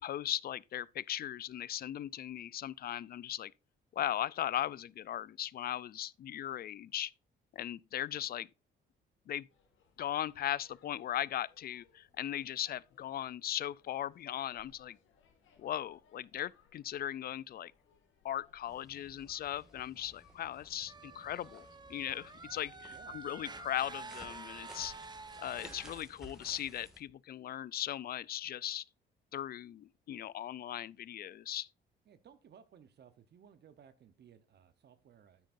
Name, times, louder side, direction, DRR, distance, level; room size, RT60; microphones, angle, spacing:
voice 1, 0.0-3.5 3.9-7.1 7.5-8.5 9.3-9.5 10.0-15.0 15.6-17.7 18.2-24.9 25.4-28.8 29.3-31.7, left 11 dB, 50° left, 0.4 m, -38 dB
sound 1, 9.5-23.6, left 6 dB, 80° left, 2.0 m, -69 dB
sound 2, 18.7-27.0, equal, 5° right, 2.0 m, -57 dB
sound 3, 20.9-26.0, right 4 dB, 20° right, 0.8 m, -49 dB
voice 2, 22.9-23.2 32.1-35.5, right 8 dB, 60° right, 0.9 m, -59 dB
9.2 x 9.0 x 2.5 m
cardioid pair, 90°, 20 cm